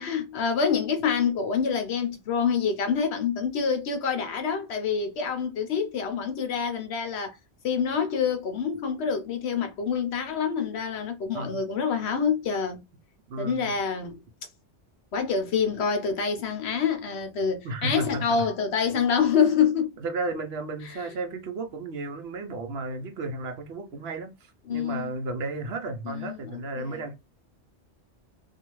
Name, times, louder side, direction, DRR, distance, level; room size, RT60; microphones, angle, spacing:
voice 1, 0.0-7.3 7.6-12.8 13.4-14.2 15.1-20.0 20.8-21.0 24.7-25.1 26.0-27.0, left 6 dB, 70° left, 0.9 m, -26 dB
voice 2, 13.3-13.7 17.6-18.5 20.0-27.1, right 3 dB, 70° right, 0.9 m, -33 dB
2.6 x 2.4 x 3.0 m
omnidirectional pair, 1.2 m